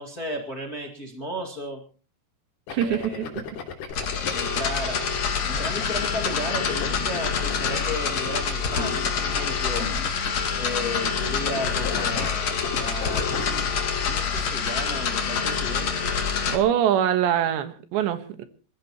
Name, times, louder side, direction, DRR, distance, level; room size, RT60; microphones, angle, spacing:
voice 1, 0.0-1.8 2.8-3.3 4.3-5.0 5.4-9.9 10.6-16.2, equal, 30° left, 1.9 m, -34 dB
sound 1, 2.7-4.3 5.5-11.2 11.5-13.6, left 6 dB, 65° left, 4.8 m, -36 dB
voice 2, 2.7-3.4 16.5-18.4, right 10 dB, 80° right, 3.6 m, -24 dB
sound 2, 3.9-16.6, left 6 dB, 45° left, 2.9 m, -26 dB
27.0 x 14.5 x 3.1 m
omnidirectional pair, 5.0 m